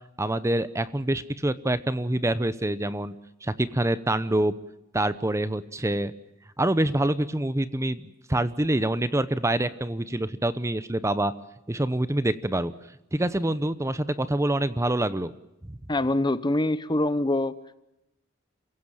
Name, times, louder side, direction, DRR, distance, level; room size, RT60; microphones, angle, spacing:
voice 1, 0.2-3.1 3.4-4.6 4.9-6.1 6.6-11.3 11.7-12.7 13.1-15.3 15.7-15.8, right 1 dB, 15° right, 15 dB, 0.8 m, -26 dB
voice 2, 15.9-17.5, left 1 dB, 20° left, 15 dB, 0.9 m, -24 dB
28.0 x 16.5 x 8.9 m, 0.90 s
head